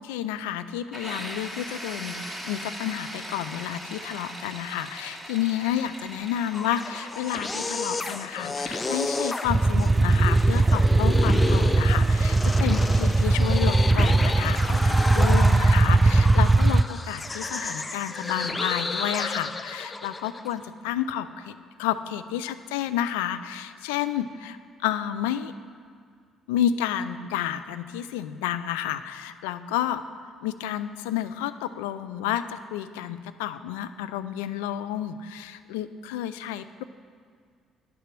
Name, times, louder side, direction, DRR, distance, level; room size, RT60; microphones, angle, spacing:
voice 1, 0.0-25.5 26.5-30.0 30.4-36.8, left 11 dB, 80° left, 12 dB, 0.4 m, -30 dB
sound 1, 0.9-16.5, equal, ahead, 2.8 m, -42 dB
sound 2, 6.4-20.5, left 3 dB, 30° left, 0.7 m, -32 dB
sound 3, 9.5-16.8, right 2 dB, 25° right, 0.3 m, -20 dB
10.0 x 9.5 x 6.0 m, 2.1 s
hypercardioid pair, 50°, 0 cm